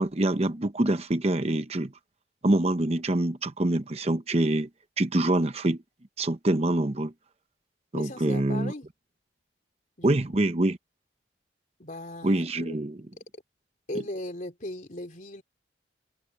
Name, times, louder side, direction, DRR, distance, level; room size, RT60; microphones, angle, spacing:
voice 1, 0.0-1.9 2.4-4.7 5.0-5.8 6.2-7.1 7.9-8.7 10.0-10.8 12.2-13.0, right 1 dB, 35° right, 0.9 m, -25 dB
voice 2, 7.9-8.9 10.0-10.1 11.8-12.8 13.9-15.4, left 1 dB, 45° left, 3.5 m, -37 dB
head